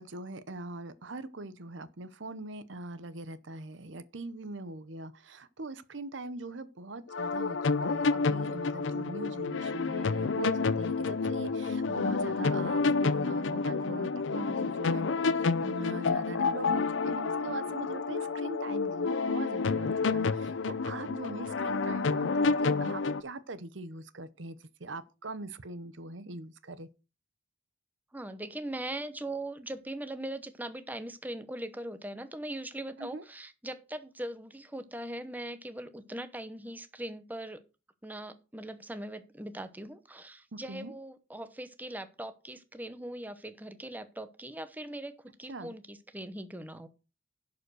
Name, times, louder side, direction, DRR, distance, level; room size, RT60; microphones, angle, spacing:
voice 1, 0.0-26.9 33.0-33.2 40.5-40.9 45.5-45.8, right 2 dB, 70° right, 0.9 m, -42 dB
sound 1, 7.1-23.2, left 4 dB, 70° left, 0.6 m, -29 dB
voice 2, 28.1-37.6 38.0-46.9, right 1 dB, 10° right, 0.9 m, -40 dB
11.5 x 5.1 x 6.2 m
head